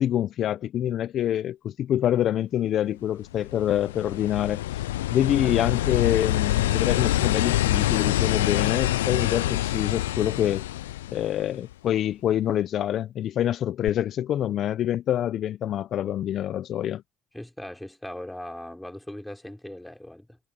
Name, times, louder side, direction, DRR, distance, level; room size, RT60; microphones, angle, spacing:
voice 1, 0.0-4.8 5.1-10.6 11.1-17.0, left 11 dB, 55° left, 0.9 m, -26 dB
sound 1, 3.2-11.7 13.9-14.0, left 15 dB, 90° left, 0.4 m, -26 dB
voice 2, 17.3-20.4, left 1 dB, 5° left, 4.6 m, -39 dB
hypercardioid pair, 65°, 0 cm